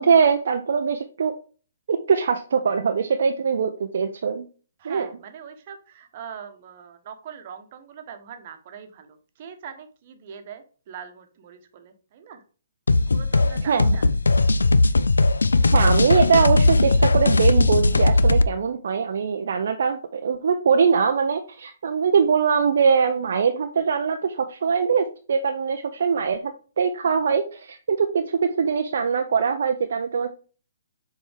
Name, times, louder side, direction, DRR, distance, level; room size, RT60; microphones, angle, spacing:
voice 1, 0.0-1.3 1.9-4.5 4.8-5.1 13.7-14.0 15.7-30.3, right 6 dB, 55° right, 5 dB, 0.6 m, -22 dB
voice 2, 4.8-12.4 13.0-14.1, right 7 dB, 40° right, 7 dB, 1.1 m, -42 dB
sound 1, 12.9-18.5, left 2 dB, 70° left, 0.4 m, -18 dB
7.0 x 4.5 x 3.5 m, 0.38 s
figure-of-eight pair, 130°, 0 cm